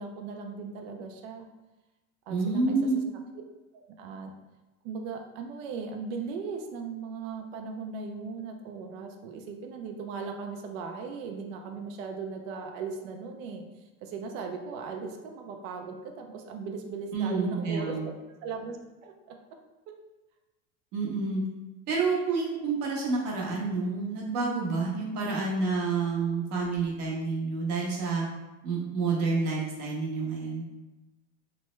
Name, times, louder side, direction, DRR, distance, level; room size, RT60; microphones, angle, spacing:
voice 1, 0.0-1.5 2.3-2.8 3.7-4.3 4.8-18.0 18.4-18.8 19.0-19.4, right 5 dB, 75° right, 3 dB, 0.5 m, -38 dB
voice 2, 2.3-3.0 17.1-18.1 20.9-21.4 21.9-28.2 28.6-30.7, right 4 dB, 50° right, -3 dB, 1.0 m, -29 dB
3.3 x 2.1 x 3.0 m, 1.1 s
supercardioid pair, 145°, 38 cm